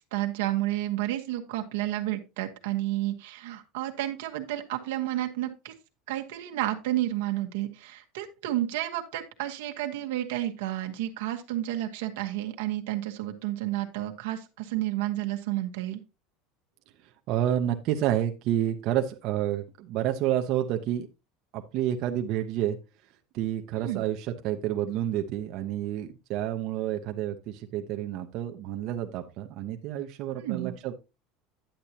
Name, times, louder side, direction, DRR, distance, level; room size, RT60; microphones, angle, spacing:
voice 1, 0.1-5.7 6.1-16.0 23.7-24.0 30.4-30.7, right 14 dB, 90° right, 5 dB, 1.2 m, -31 dB
voice 2, 17.3-21.1 21.5-22.8 23.3-30.9, right 11 dB, 55° right, 5 dB, 0.8 m, -29 dB
10.0 x 7.9 x 2.8 m, 0.27 s
supercardioid pair, 140°, 0 cm